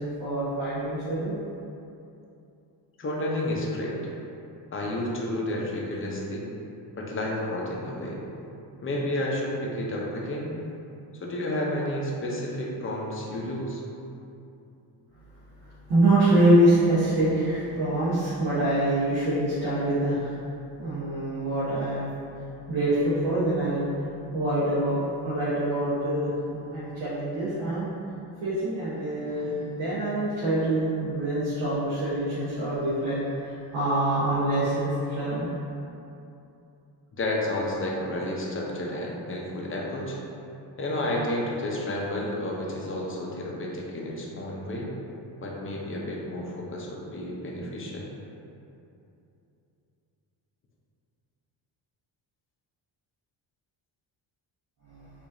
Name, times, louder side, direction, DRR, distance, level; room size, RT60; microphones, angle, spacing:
voice 1, 0.0-1.4 15.2-15.3 15.6-20.4 20.8-22.1 22.7-23.9 24.3-27.9 28.4-35.5 54.9-55.1, right 1 dB, 60° right, -11 dB, 1.2 m, -25 dB
voice 2, 3.0-4.0 4.7-6.4 6.9-8.2 8.8-10.5 11.1-13.8 37.2-40.2 40.8-44.9 45.4-48.1, left 1 dB, 25° left, -2 dB, 0.7 m, -31 dB
4.7 x 2.6 x 2.6 m, 2.7 s
cardioid pair, 100°, 46 cm